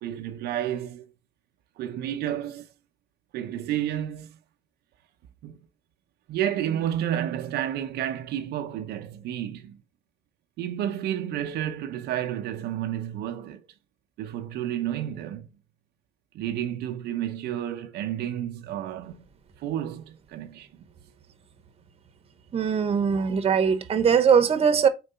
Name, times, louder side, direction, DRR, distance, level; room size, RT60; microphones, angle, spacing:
voice 1, 0.0-1.1 1.8-2.7 3.3-4.4 5.4-5.6 6.3-9.8 10.6-13.6 14.2-15.5 16.3-19.3 19.6-20.9, right 11 dB, 75° right, 0.7 m, -31 dB
voice 2, 22.5-24.9, right 7 dB, 35° right, 1.0 m, -21 dB
4.6 x 3.8 x 5.5 m
cardioid pair, 110°, 17 cm